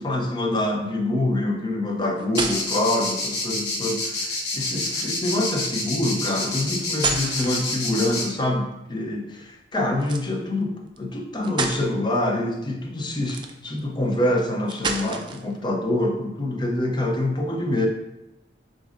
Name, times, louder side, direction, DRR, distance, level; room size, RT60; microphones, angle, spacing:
voice 1, 0.0-17.9, left 1 dB, 25° left, 1 dB, 0.5 m, -25 dB
sound 1, 1.9-2.9 4.9-5.3 6.8-8.1 10.0-10.3 11.0-11.1 11.4-11.9 13.2-13.8 14.7-15.5, right 4 dB, 25° right, 0.3 m, -30 dB
sound 2, 2.3-8.2, left 3 dB, 65° left, 0.9 m, -28 dB
6.7 x 2.6 x 2.5 m, 0.91 s
head